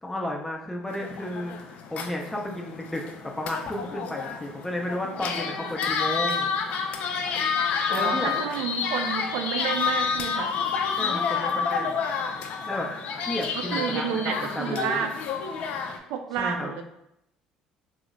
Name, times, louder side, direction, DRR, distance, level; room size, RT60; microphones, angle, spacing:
voice 1, 0.0-6.5 7.9-8.3 11.0-12.0 12.7-12.9 13.3-15.0 16.4-16.7, left 1 dB, 10° left, 0 dB, 0.7 m, -33 dB
sound 1, 0.9-16.0, left 6 dB, 65° left, 0.4 m, -29 dB
voice 2, 7.9-10.5 13.7-15.1 16.1-16.8, right 7 dB, 80° right, 5 dB, 0.4 m, -30 dB
3.0 x 2.0 x 3.7 m, 0.81 s
supercardioid pair, 85°, 2 cm